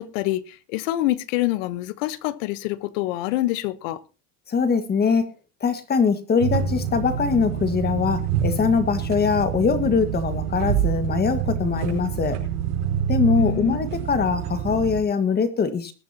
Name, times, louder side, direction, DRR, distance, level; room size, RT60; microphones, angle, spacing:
voice 1, 0.0-4.0 13.4-13.8, left 16 dB, 60° left, 1.2 m, -26 dB
voice 2, 4.5-5.3 5.6-12.4 13.1-15.9, left 5 dB, 20° left, 1.8 m, -22 dB
sound 1, 6.4-15.0, right 8 dB, 80° right, 5.0 m, -26 dB
20.5 x 11.5 x 2.9 m
supercardioid pair, 130°, 44 cm